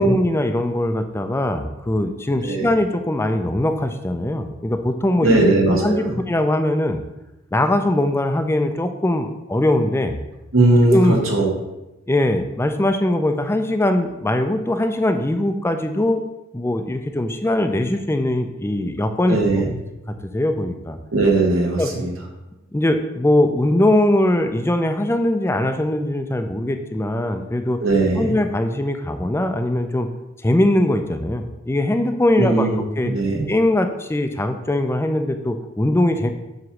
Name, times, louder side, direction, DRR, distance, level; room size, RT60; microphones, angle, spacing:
voice 1, 0.0-7.0 7.5-10.2 10.8-11.2 12.1-16.2 16.5-19.7 20.3-21.0 21.8-21.9 22.7-27.8 28.2-30.1 30.4-32.7 33.0-33.1 33.5-36.3, left 1 dB, 10° left, 7 dB, 0.4 m, -21 dB
voice 2, 5.2-6.2 10.5-11.5 19.3-19.7 21.1-22.1 27.8-28.2 32.4-33.5, right 2 dB, 90° right, -1 dB, 1.8 m, -18 dB
7.6 x 3.1 x 6.1 m, 0.97 s
head